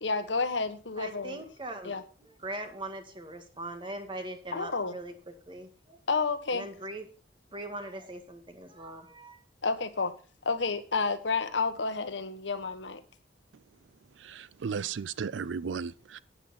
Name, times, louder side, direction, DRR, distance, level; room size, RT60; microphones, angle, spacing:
voice 1, 0.0-1.4 1.8-2.0 4.5-4.9 6.1-6.7 9.6-10.1 10.4-13.0, left 4 dB, 80° left, 1.4 m, -30 dB
voice 2, 1.0-6.0 6.5-7.1 7.5-9.4, right 1 dB, 25° right, 1.9 m, -41 dB
voice 3, 14.2-16.2, right 6 dB, 85° right, 0.4 m, -35 dB
12.0 x 9.7 x 4.3 m
head